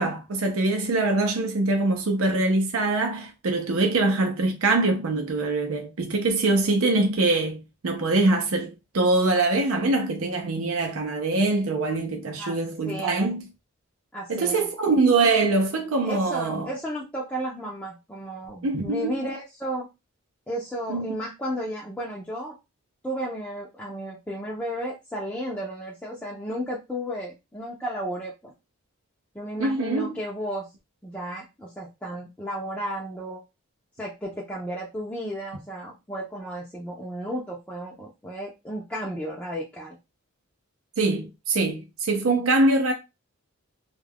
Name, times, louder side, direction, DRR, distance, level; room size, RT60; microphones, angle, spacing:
voice 1, 0.0-13.4 14.3-16.7 18.6-19.1 20.9-21.1 29.6-30.2 41.0-42.9, right 2 dB, 80° right, 0.6 m, -23 dB
voice 2, 12.9-13.4 14.1-14.7 16.0-19.9 20.5-22.5 23.0-28.5 29.3-30.7 31.0-33.4 34.0-40.0, equal, 5° left, 0.5 m, -33 dB
2.3 x 2.2 x 3.4 m
head